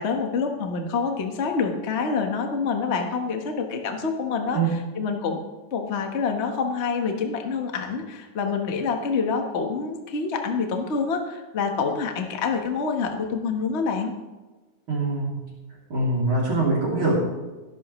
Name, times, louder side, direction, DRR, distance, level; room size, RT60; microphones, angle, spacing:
voice 1, 0.0-4.6 5.0-5.4 5.7-14.1, left 5 dB, 85° left, 3 dB, 0.6 m, -26 dB
voice 2, 14.9-15.4 15.9-17.1, right 2 dB, 40° right, -5 dB, 3.7 m, -23 dB
18.0 x 11.0 x 3.2 m, 1.2 s
omnidirectional pair, 3.6 m